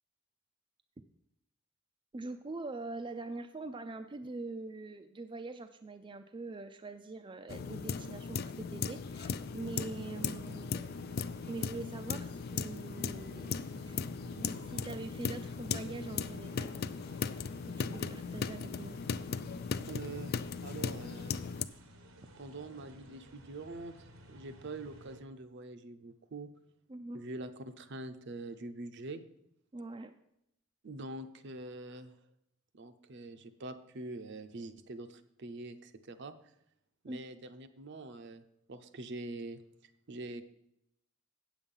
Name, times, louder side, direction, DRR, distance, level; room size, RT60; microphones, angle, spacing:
voice 1, 2.1-10.9 11.5-13.5 13.8-14.0 14.4-16.8 17.8-18.9 26.9-27.2 29.7-30.1 37.1-37.2, right 3 dB, 25° right, 7 dB, 0.4 m, -43 dB
sound 1, 7.5-21.7, left 6 dB, 50° left, 0.4 m, -38 dB
sound 2, 9.1-25.2, right 2 dB, 85° right, 1.1 m, -56 dB
voice 2, 19.9-21.4 22.4-26.5 27.1-29.2 30.8-32.1 32.7-36.3 37.0-38.4 38.7-40.4, right 2 dB, 55° right, 10 dB, 0.7 m, -44 dB
9.0 x 7.2 x 5.4 m, 0.79 s
head